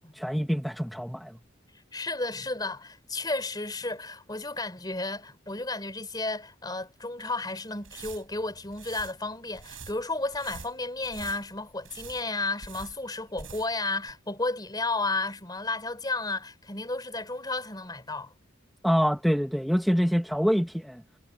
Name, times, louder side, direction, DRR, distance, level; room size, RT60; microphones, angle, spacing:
voice 1, 0.1-1.4 18.8-21.0, equal, ahead, 0.7 m, -25 dB
voice 2, 1.9-18.3, left 2 dB, 20° left, 3.8 m, -33 dB
sound 1, 7.7-13.8 14.1-14.2, right 5 dB, 80° right, 6.2 m, -46 dB
head